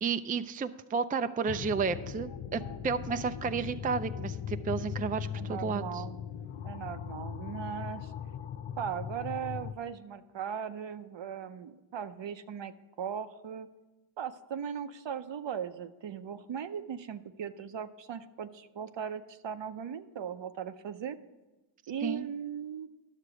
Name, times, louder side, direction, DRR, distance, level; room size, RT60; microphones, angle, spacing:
voice 1, 0.0-6.0 22.0-22.3, right 5 dB, 20° right, 10 dB, 0.4 m, -32 dB
sound 1, 1.5-9.7, left 8 dB, 80° left, 0.6 m, -39 dB
voice 2, 5.3-6.2 6.6-8.1 8.8-13.7 14.2-21.2 21.9-22.9, right 8 dB, 65° right, 10 dB, 0.7 m, -38 dB
11.0 x 6.6 x 4.9 m, 1.1 s
cardioid pair, 45°, 47 cm